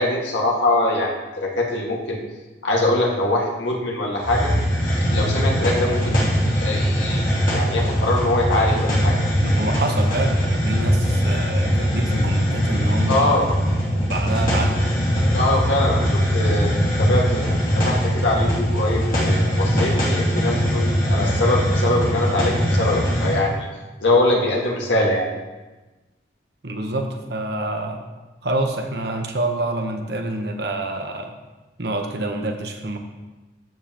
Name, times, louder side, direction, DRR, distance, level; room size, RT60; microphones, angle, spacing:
voice 1, 0.0-2.2 2.6-4.5 5.1-6.2 6.5-7.3 7.5-9.2 13.1-13.4 15.3-16.7 17.0-17.4 17.8-23.7 24.0-25.3, left 2 dB, 90° left, -2 dB, 1.9 m, -22 dB
Hiss, 4.2-23.4, equal, 50° left, 2.9 m, -21 dB
voice 2, 9.4-13.5 13.9-14.9 26.6-28.0 28.4-31.3 31.8-33.0, right 2 dB, 65° right, 4 dB, 1.1 m, -27 dB
13.5 x 7.3 x 3.0 m, 1.2 s
head